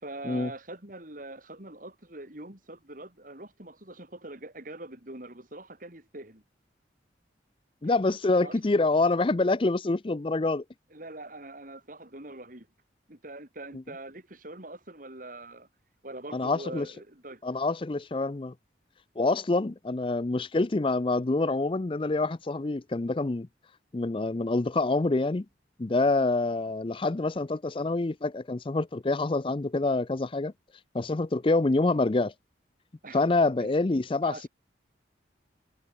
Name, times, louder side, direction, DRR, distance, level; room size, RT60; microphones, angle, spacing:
voice 1, 0.0-6.4 7.8-7.9 8.4-8.6 10.9-12.7 13.1-15.7 16.0-17.4 33.0-33.2 33.6-33.7 34.2-34.5, right 2 dB, 50° right, 3.6 m, -43 dB
voice 2, 7.8-10.6 16.3-16.9 17.4-18.5 19.2-23.5 23.9-25.4 25.8-30.5 30.9-32.3 33.1-34.5, left 2 dB, 30° left, 0.5 m, -26 dB
head